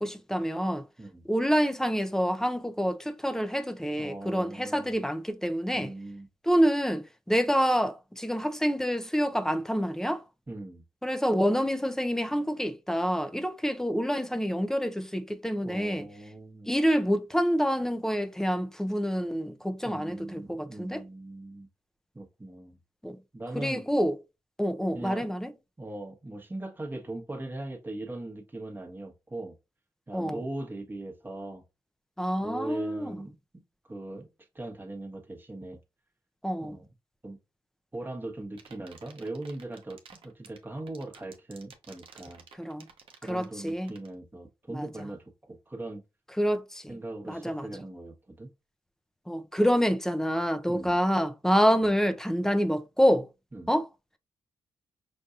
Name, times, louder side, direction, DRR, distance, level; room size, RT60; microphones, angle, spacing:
voice 1, 0.0-0.8 1.3-5.9 6.5-10.2 11.0-16.1 16.7-21.0 23.0-23.2 23.5-24.1 24.6-25.5 30.1-30.4 32.2-33.1 36.4-36.8 42.6-42.9 43.3-43.9 44.7-44.9 46.4-46.9 47.2-47.7 49.3-53.3 53.7-53.9, equal, 5° left, 0.6 m, -27 dB
voice 2, 4.0-5.0 5.7-6.3 10.5-10.8 15.6-16.8 19.8-21.7 22.1-22.8 23.3-23.8 24.9-25.3 25.8-29.5 30.1-31.6 32.4-33.3 33.8-34.3 34.5-35.8 36.6-36.9 37.2-37.4 37.9-40.0 40.2-42.4 43.2-46.0 46.9-48.5 50.7-51.0 53.5-53.7, right 2 dB, 20° right, 1.2 m, -40 dB
sound 1, 38.4-44.1, right 6 dB, 65° right, 0.8 m, -51 dB
5.3 x 2.6 x 2.4 m
supercardioid pair, 45°, 10 cm